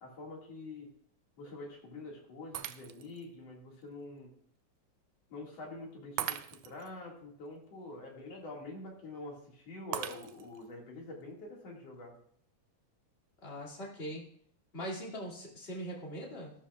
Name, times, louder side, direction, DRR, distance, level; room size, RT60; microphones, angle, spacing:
voice 1, 0.0-0.9 1.4-4.3 5.3-12.1, left 2 dB, 60° left, -1 dB, 3.1 m, -46 dB
Shatter, 2.5-3.2 3.8-3.9 6.2-6.9 9.9-10.7, right 12 dB, 85° right, 1.4 m, -39 dB
voice 2, 13.4-14.2 14.7-16.5, equal, 20° left, -3 dB, 2.3 m, -41 dB
13.5 x 12.0 x 2.4 m, 0.64 s
omnidirectional pair, 3.3 m